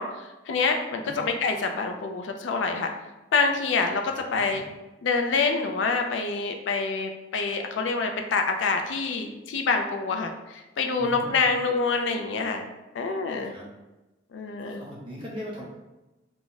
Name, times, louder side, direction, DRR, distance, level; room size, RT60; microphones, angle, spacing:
voice 1, 0.0-2.9 3.3-4.6 5.0-12.7 12.9-13.5 14.3-14.8, left 4 dB, 80° left, 4 dB, 0.4 m, -26 dB
voice 2, 4.2-4.7 11.0-11.5 13.4-13.7 14.6-15.6, equal, 30° right, -4 dB, 0.8 m, -40 dB
2.4 x 2.0 x 3.9 m, 1.1 s
head